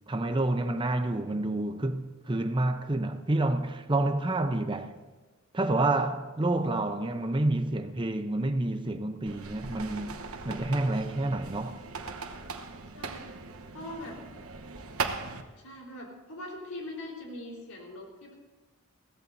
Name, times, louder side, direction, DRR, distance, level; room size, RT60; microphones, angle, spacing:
voice 1, 0.1-4.9 5.5-11.8, right 2 dB, 20° right, 0.6 m, -29 dB
sound 1, 9.3-15.4, right 4 dB, 80° right, 1.1 m, -39 dB
voice 2, 13.0-13.4 13.7-14.2 15.5-18.3, left 1 dB, 85° left, 4.0 m, -42 dB
22.0 x 16.5 x 2.7 m
head